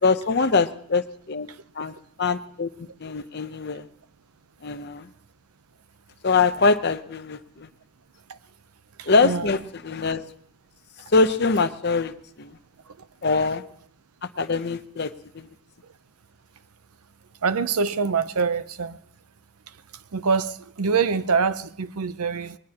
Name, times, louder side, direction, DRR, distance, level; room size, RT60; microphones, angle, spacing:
voice 1, 0.0-1.5 1.8-3.9 4.6-5.1 6.2-7.7 9.1-10.2 11.1-12.6 13.2-13.6 14.4-15.5, left 4 dB, 50° left, 0.7 m, -23 dB
voice 2, 9.0-9.5 17.4-19.0 20.1-22.6, right 5 dB, 80° right, 0.7 m, -25 dB
20.5 x 20.0 x 2.9 m
head